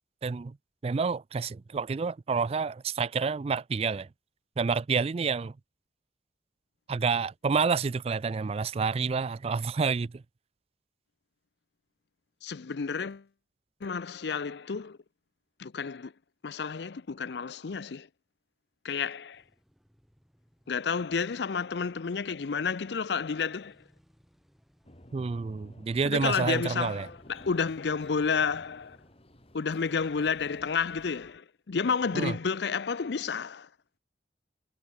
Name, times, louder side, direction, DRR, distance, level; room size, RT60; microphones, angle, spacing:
voice 1, 0.2-0.6 0.8-4.1 4.6-5.5 6.9-10.2 25.1-27.1 32.1-32.3, right 5 dB, 35° right, 0.3 m, -29 dB
voice 2, 12.4-13.3 13.8-15.0 15.6-16.1 16.4-18.1 18.8-19.4 20.7-23.8 26.0-29.0 29.5-33.7, left 5 dB, 70° left, 0.5 m, -31 dB
sound 1, 19.3-31.4, equal, ahead, 7.0 m, -68 dB
sound 2, 24.8-31.1, left 1 dB, 35° left, 3.7 m, -54 dB
head